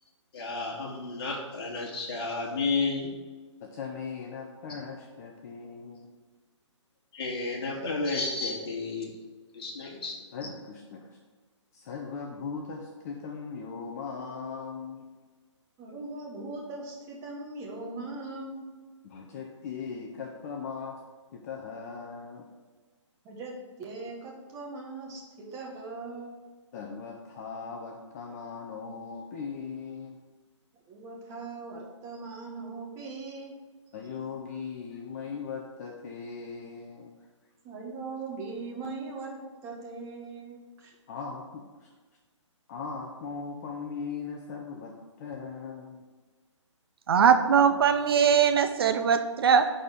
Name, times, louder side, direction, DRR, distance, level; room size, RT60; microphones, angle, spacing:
voice 1, 0.3-3.1 7.1-9.1 9.5-10.2, left 3 dB, 50° left, -1 dB, 2.2 m, -31 dB
voice 2, 3.6-6.1 10.3-11.2 11.7-15.1 19.0-21.0 21.3-22.5 26.7-30.2 33.9-37.1 41.1-41.9 42.7-46.0, left 5 dB, 30° left, 1 dB, 0.8 m, -39 dB
voice 3, 15.8-18.6 23.2-26.3 30.9-33.5 37.6-40.9, right 3 dB, 20° right, -2 dB, 1.5 m, -40 dB
voice 4, 47.1-49.7, right 7 dB, 50° right, 8 dB, 0.6 m, -21 dB
10.5 x 4.3 x 5.2 m, 1.4 s
hypercardioid pair, 150°, 16 cm